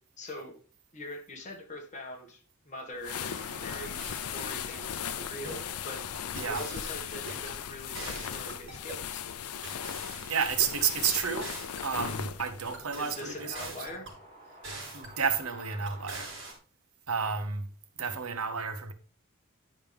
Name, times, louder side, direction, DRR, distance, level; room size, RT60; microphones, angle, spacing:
voice 1, 0.2-0.6 0.9-2.4 2.6-6.1 6.4-9.2 13.0-14.1, left 1 dB, 35° left, 1.7 m, -43 dB
sound 1, 3.0-12.8, left 8 dB, 90° left, 0.5 m, -38 dB
sound 2, 3.0-16.6, right 1 dB, 25° right, 3.0 m, -54 dB
sound 3, 4.0-4.6 5.4-5.7 6.1-7.5 7.9-9.1 9.6-10.9 11.4-12.2 12.7-14.2 14.6-15.4 15.9-16.5, right 2 dB, 60° right, 3.7 m, -44 dB
voice 2, 6.3-6.6 10.3-13.8 14.9-16.3 17.1-17.7 18.0-18.9, right 6 dB, 80° right, 1.0 m, -31 dB
10.5 x 5.5 x 3.4 m
head